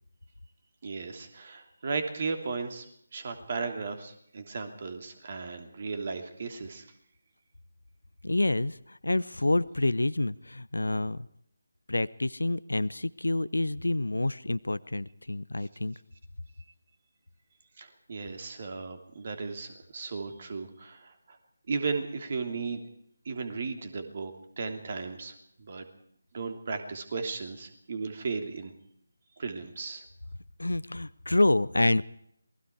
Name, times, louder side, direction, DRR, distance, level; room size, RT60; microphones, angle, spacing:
voice 1, 0.8-2.9 3.1-6.9 17.8-21.4 21.7-22.8 23.2-25.9 26.3-28.7 29.4-30.0, right 4 dB, 35° right, 7 dB, 3.0 m, -35 dB
voice 2, 8.2-11.3 11.9-15.9 30.6-32.2, left 2 dB, 70° left, 18 dB, 0.8 m, -28 dB
27.5 x 20.5 x 4.8 m, 0.68 s
figure-of-eight pair, 155°, 0 cm